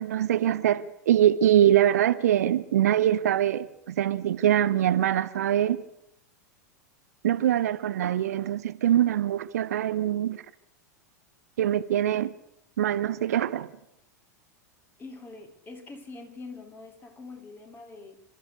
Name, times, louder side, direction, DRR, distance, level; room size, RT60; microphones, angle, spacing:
voice 1, 0.0-5.8 7.2-10.4 11.6-12.3 12.8-13.7, right 11 dB, 65° right, 0.9 m, -23 dB
voice 2, 15.0-18.2, left 3 dB, 20° left, 3.9 m, -44 dB
27.5 x 13.5 x 8.3 m
figure-of-eight pair, 90°, 9 cm